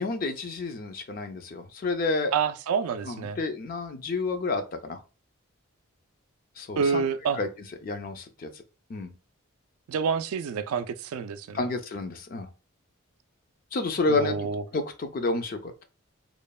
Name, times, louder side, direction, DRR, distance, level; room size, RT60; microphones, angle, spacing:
voice 1, 0.0-2.3 3.1-5.0 6.6-7.0 7.4-7.5 7.8-8.5 8.9-9.1 11.5-12.5 13.7-14.4 14.7-15.8, left 3 dB, 40° left, 0.4 m, -30 dB
voice 2, 2.3-3.4 6.8-7.4 9.9-11.7 14.1-14.6, right 6 dB, 80° right, 0.3 m, -28 dB
3.0 x 2.1 x 2.2 m
head